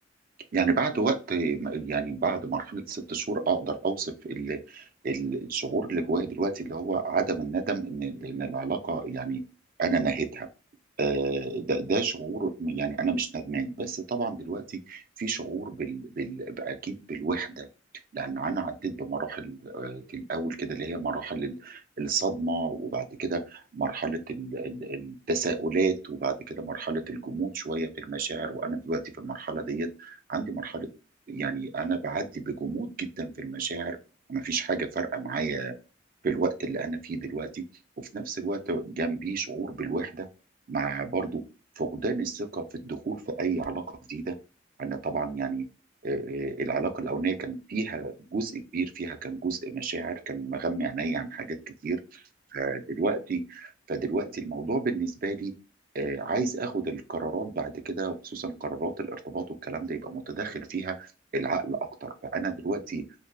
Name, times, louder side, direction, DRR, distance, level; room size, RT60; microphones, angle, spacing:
voice 1, 0.5-9.4 9.8-10.5 11.0-17.7 18.1-30.9 31.3-34.0 34.3-35.7 36.2-37.6 38.1-40.3 40.7-41.4 41.8-44.4 44.8-45.7 46.0-51.6 51.8-52.2 52.5-55.5 55.9-63.0, right 4 dB, 45° right, 8 dB, 0.4 m, -31 dB
2.5 x 2.2 x 2.2 m, 0.34 s
head